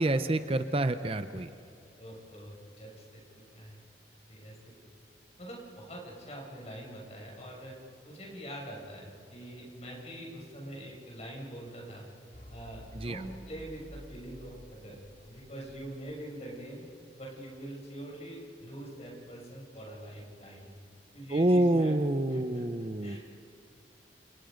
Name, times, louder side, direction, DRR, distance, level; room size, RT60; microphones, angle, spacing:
voice 1, 0.0-1.5 12.9-13.2 21.3-23.2, right 1 dB, 30° right, 10 dB, 0.7 m, -27 dB
voice 2, 2.0-3.8 4.3-4.7 5.4-7.8 8.0-12.0 12.5-16.9 17.2-20.7 21.1-21.9 22.2-22.6 23.0-23.2, right 1 dB, 35° left, -2 dB, 6.7 m, -44 dB
sound 1, 12.3-16.9, equal, 55° left, 4.0 m, -51 dB
28.5 x 28.5 x 5.2 m, 2.6 s
head